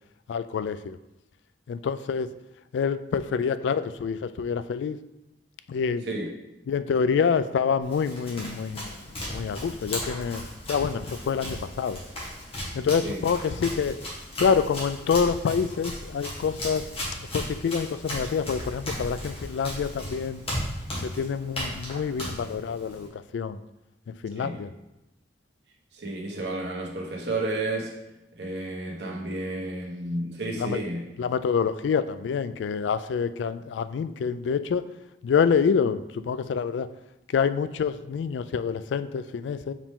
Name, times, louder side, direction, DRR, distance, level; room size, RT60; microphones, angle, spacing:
voice 1, 0.3-1.0 1.7-2.3 2.7-5.0 5.7-6.1 6.7-10.4 10.7-12.0 12.7-14.0 14.4-16.9 17.3-20.4 21.0-23.7 24.1-24.7 30.6-30.8 31.2-34.9 35.2-36.9 37.3-39.7, left 6 dB, 85° left, 13 dB, 0.3 m, -27 dB
Run, 7.8-23.1, left 1 dB, 35° left, 1.8 m, -36 dB
voice 2, 25.9-27.9 28.4-31.0, right 2 dB, 70° right, -2 dB, 1.3 m, -31 dB
5.4 x 4.9 x 3.6 m, 0.95 s
head